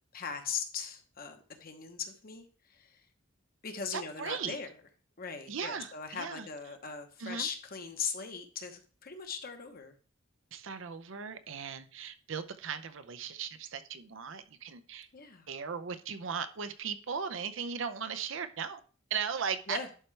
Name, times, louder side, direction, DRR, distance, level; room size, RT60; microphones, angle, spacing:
voice 1, 0.1-3.0 3.6-4.7 5.2-9.9 15.1-15.5 19.7-19.9, left 6 dB, 45° left, 1.0 m, -39 dB
voice 2, 3.9-4.6 5.5-6.5 7.2-7.5 10.5-15.1 15.5-18.8 19.1-19.8, right 6 dB, 65° right, 0.6 m, -37 dB
11.0 x 4.5 x 3.3 m
head